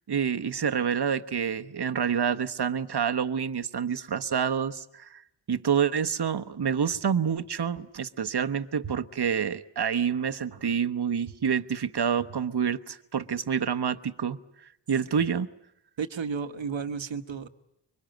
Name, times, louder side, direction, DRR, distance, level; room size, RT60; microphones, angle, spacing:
voice 1, 0.1-5.2 5.5-14.4 14.9-15.5, right 7 dB, 60° right, 9 dB, 1.1 m, -28 dB
voice 2, 16.0-17.5, right 6 dB, 80° right, 9 dB, 1.4 m, -32 dB
25.5 x 23.5 x 9.1 m, 0.82 s
wide cardioid pair, 70°, 45 cm